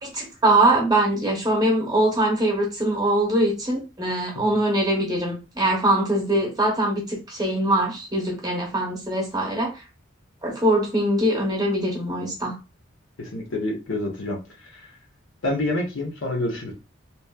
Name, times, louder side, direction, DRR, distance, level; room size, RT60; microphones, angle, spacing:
voice 1, 0.0-9.7 10.4-12.5, right 1 dB, 20° right, -2 dB, 0.8 m, -22 dB
voice 2, 13.2-14.4 14.7-14.9 15.4-16.7, left 1 dB, 70° left, 0 dB, 0.9 m, -27 dB
3.0 x 2.4 x 2.3 m, 0.29 s
head